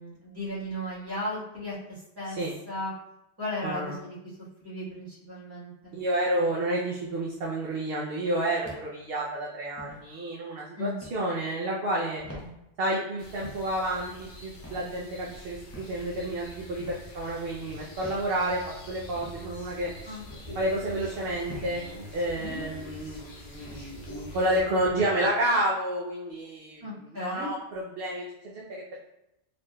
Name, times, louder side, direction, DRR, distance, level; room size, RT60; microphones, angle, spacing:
voice 1, 0.0-1.7 2.2-2.4 2.7-2.9 3.4-4.2 4.6-6.0 10.8-11.0 20.0-20.3 22.4-22.6 26.8-27.5, left 1 dB, 20° right, -10 dB, 1.5 m, -35 dB
voice 2, 2.2-2.5 3.6-4.0 5.9-12.2 12.8-18.6 18.9-19.9 20.5-21.8 22.1-28.2 28.5-28.8, right 1 dB, 60° right, -4 dB, 0.7 m, -30 dB
sound 1, 8.6-9.1 9.8-10.0 11.0-11.2 12.2-12.5 13.4-13.7 14.6-14.9 15.7-16.0 16.8-17.1 18.0-18.3 19.2-19.4 20.3-20.5 21.5-21.7 22.5-22.8 23.7-23.9 24.8-25.0, equal, 15° left, 0.6 m, -44 dB
sound 2, 13.2-24.6, equal, 65° left, 0.9 m, -47 dB
sound 3, 14.6-25.0, equal, 35° left, 1.5 m, -47 dB
4.0 x 3.0 x 2.2 m, 0.87 s
omnidirectional pair, 1.2 m